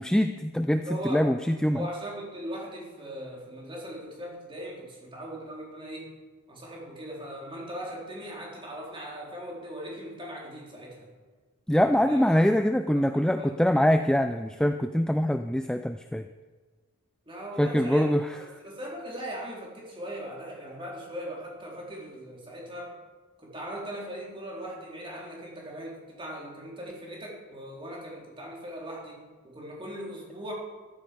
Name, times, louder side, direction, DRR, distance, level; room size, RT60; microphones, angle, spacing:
voice 1, 0.0-1.9 11.7-16.2 17.6-18.3, equal, 5° left, 8 dB, 0.3 m, -24 dB
voice 2, 0.9-1.3 1.7-6.1 6.5-11.1 11.8-12.5 12.9-13.5 17.3-23.0 23.4-30.5, equal, 20° right, -3 dB, 3.9 m, -39 dB
14.5 x 13.5 x 5.3 m, 1.4 s
head